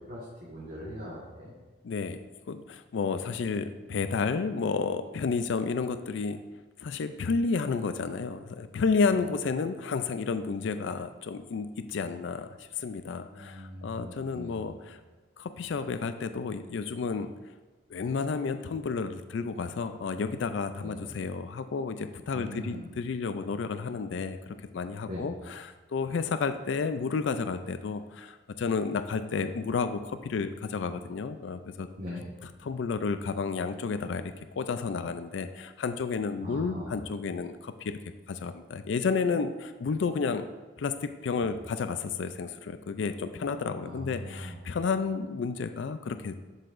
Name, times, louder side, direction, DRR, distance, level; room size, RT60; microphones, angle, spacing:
voice 1, 0.1-1.5 9.1-9.2 13.3-14.6 20.8-21.0 22.3-22.9 25.1-25.3 32.0-32.3 36.4-36.9 43.8-44.6, left 1 dB, 50° right, -6 dB, 1.5 m, -40 dB
voice 2, 1.8-2.2 2.5-6.4 6.8-15.0 15.4-17.3 17.9-31.9 32.4-38.0 38.3-40.5 40.8-46.4, left 5 dB, 75° left, 10 dB, 0.4 m, -31 dB
11.5 x 6.6 x 2.5 m, 1.2 s
head